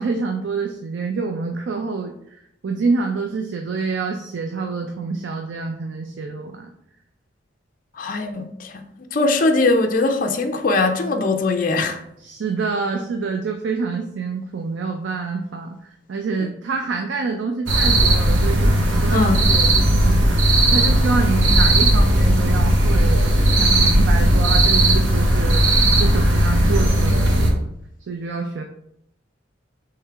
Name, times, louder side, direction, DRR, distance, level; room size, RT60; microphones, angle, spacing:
voice 1, 0.0-2.1 2.6-6.7 12.2-23.2 23.6-27.7 28.1-28.6, right 4 dB, 70° right, 0.4 m, -27 dB
voice 2, 8.0-8.8 9.1-12.0 19.1-19.4, left 3 dB, 45° left, 0.4 m, -20 dB
sound 1, 17.7-27.5, right 1 dB, 85° right, 0.8 m, -16 dB
3.6 x 3.2 x 4.4 m
head